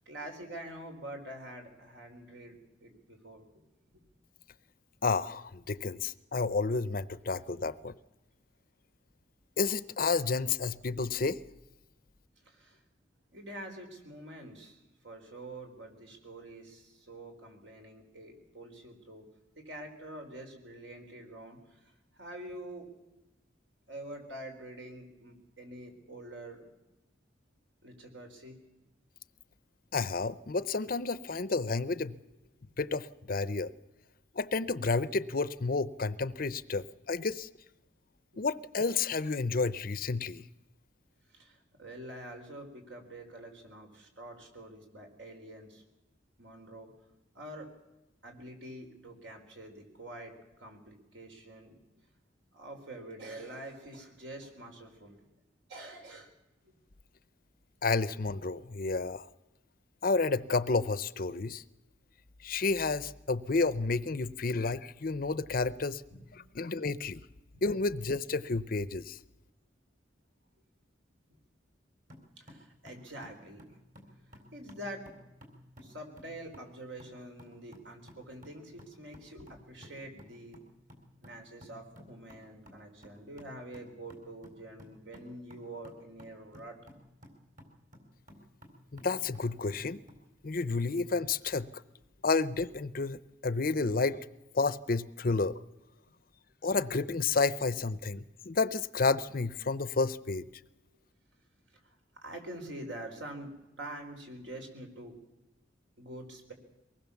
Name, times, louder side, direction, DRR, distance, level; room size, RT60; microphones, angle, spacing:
voice 1, 0.0-3.4 7.5-7.7 12.5-12.8 13.3-19.2 19.6-21.8 22.1-22.9 23.9-26.7 27.8-28.6 38.3-38.4 41.3-45.8 46.4-46.9 47.3-47.7 48.2-51.8 52.5-55.2 55.7-56.3 56.6-56.7 66.1-66.3 67.5-67.6 72.4-73.6 74.5-75.1 75.8-80.6 81.2-86.8 101.8-102.0 102.2-105.2 106.0-106.5, right 1 dB, 70° right, 4 dB, 4.4 m, -46 dB
voice 2, 5.0-7.9 9.6-11.4 29.9-32.1 32.8-33.7 34.4-37.5 38.4-40.4 57.8-59.3 60.0-61.6 62.4-66.0 66.5-67.2 67.6-69.2 88.9-90.0 90.4-91.7 92.2-94.3 94.5-95.6 96.6-100.5, left 4 dB, 50° left, 16 dB, 0.7 m, -30 dB
sound 1, 72.1-90.3, equal, 45° right, 4.1 m, -56 dB
23.5 x 19.5 x 7.2 m, 0.97 s
head